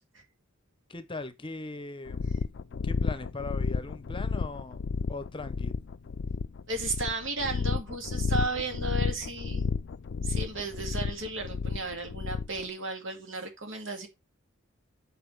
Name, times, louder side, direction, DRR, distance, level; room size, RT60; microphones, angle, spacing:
voice 1, 0.9-2.3 2.8-4.8 5.1-5.8, left 3 dB, 25° left, 0.8 m, -39 dB
sound 1, 2.1-12.6, left 5 dB, 60° left, 0.4 m, -32 dB
voice 2, 6.7-9.7 10.2-14.1, right 3 dB, 65° right, 2.4 m, -34 dB
8.6 x 5.2 x 4.6 m
head